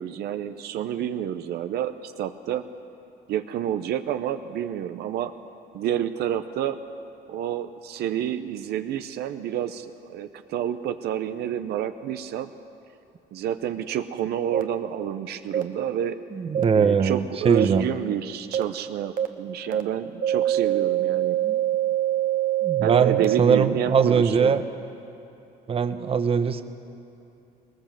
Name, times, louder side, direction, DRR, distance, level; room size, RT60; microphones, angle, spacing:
voice 1, 0.0-2.6 3.3-5.3 5.7-6.8 7.3-12.5 13.3-16.2 16.7-21.4 22.8-24.5, right 10 dB, 75° right, 9 dB, 0.8 m, -29 dB
sound 1, 14.5-14.6 15.5-15.6 16.5-16.6 17.6-17.7 18.5-18.6 19.2-19.3 19.7-19.8 20.2-23.4, right 12 dB, 55° right, 1.1 m, -24 dB
voice 2, 16.3-17.9 21.4-21.6 22.6-24.6 25.7-26.6, right 6 dB, 35° right, 10 dB, 0.9 m, -21 dB
19.5 x 19.0 x 7.5 m, 2.8 s
cardioid pair, 110°, 17 cm